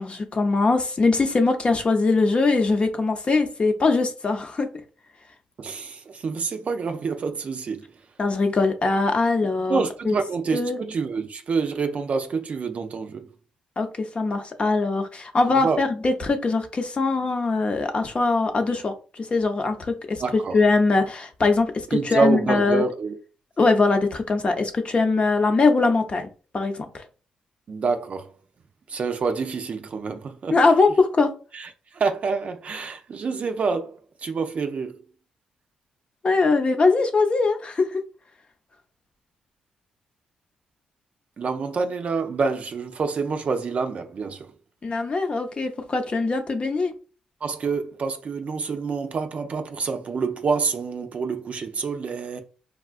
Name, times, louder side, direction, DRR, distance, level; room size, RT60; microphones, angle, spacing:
voice 1, 0.0-4.7 8.2-10.2 10.5-10.8 13.8-22.8 23.6-26.3 26.5-27.1 30.5-31.3 36.2-38.0 44.8-46.9, left 3 dB, 40° left, 0.7 m, -22 dB
voice 2, 5.6-7.9 9.7-13.3 15.5-15.8 20.2-20.6 21.9-23.1 27.7-28.3 28.9-30.5 31.5-31.7 31.9-35.0 41.4-44.5 47.4-52.4, right 4 dB, 50° right, 0.5 m, -27 dB
3.6 x 2.3 x 2.4 m
supercardioid pair, 55°, 3 cm